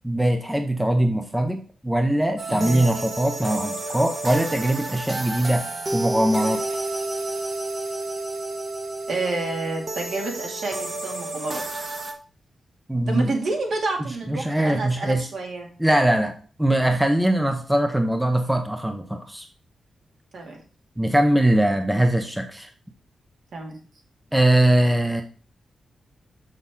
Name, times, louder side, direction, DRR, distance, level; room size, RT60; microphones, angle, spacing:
voice 1, 0.0-5.6 5.9-6.6 12.9-13.3 14.3-15.3 15.8-19.4 21.0-22.7 24.3-25.2, right 1 dB, 5° right, 5 dB, 0.7 m, -21 dB
sound 1, 2.4-12.1, right 2 dB, 30° right, 1.1 m, -31 dB
voice 2, 2.5-2.9 9.1-11.8 13.1-15.7 20.3-20.6 23.5-23.8, right 3 dB, 65° right, 0 dB, 2.4 m, -29 dB
6.8 x 6.4 x 3.7 m, 0.39 s
wide cardioid pair, 150°, 0 cm